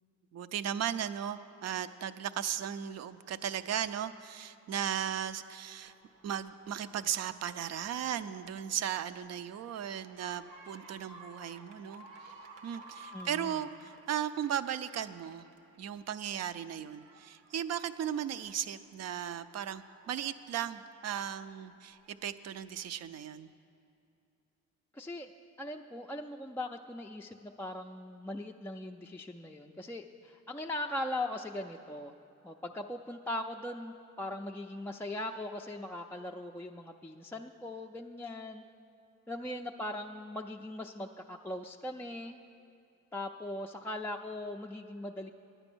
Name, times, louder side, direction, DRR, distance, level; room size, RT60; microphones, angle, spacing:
voice 1, 0.3-5.9 6.2-12.3 12.6-15.5 15.8-23.5, right 9 dB, 60° right, 13 dB, 0.5 m, -36 dB
sound 1, 5.8-16.0 16.4-18.9 19.4-22.3 23.1-23.2, right 2 dB, 90° right, 1.0 m, -55 dB
voice 2, 13.1-13.6 24.9-25.3 25.6-32.1 32.4-38.6 39.3-42.4 43.1-45.3, left 1 dB, 10° left, 1 dB, 0.3 m, -40 dB
10.5 x 9.0 x 6.1 m, 2.6 s
cardioid pair, 90°, 30 cm